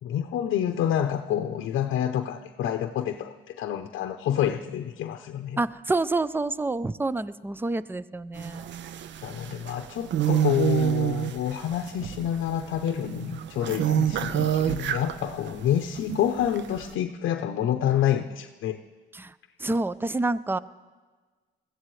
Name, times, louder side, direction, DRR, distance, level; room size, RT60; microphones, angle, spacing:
voice 1, 0.0-5.6 9.2-18.8, left 10 dB, 75° left, 6 dB, 0.7 m, -28 dB
voice 2, 5.6-8.7 19.1-19.3 19.6-20.6, right 2 dB, 10° right, 17 dB, 0.4 m, -28 dB
sound 1, 8.4-15.6 15.9-16.9, right 10 dB, 65° right, 0.6 m, -28 dB
22.5 x 15.5 x 3.2 m, 1.4 s
cardioid pair, 90°, 20 cm